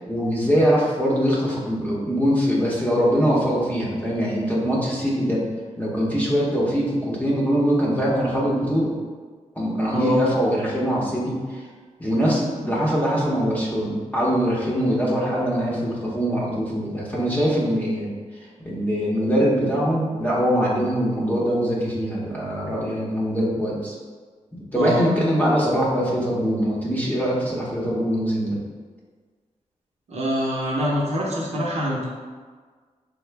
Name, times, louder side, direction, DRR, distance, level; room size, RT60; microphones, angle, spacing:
voice 1, 0.1-5.4 5.8-8.9 9.6-11.6 12.0-18.1 18.6-23.9 24.7-28.6, equal, 10° left, -6 dB, 0.8 m, -22 dB
voice 2, 9.9-10.2 24.7-25.0 30.1-32.1, equal, 60° right, -4 dB, 0.8 m, -24 dB
3.6 x 2.1 x 3.3 m, 1.5 s
cardioid pair, 90°, 13 cm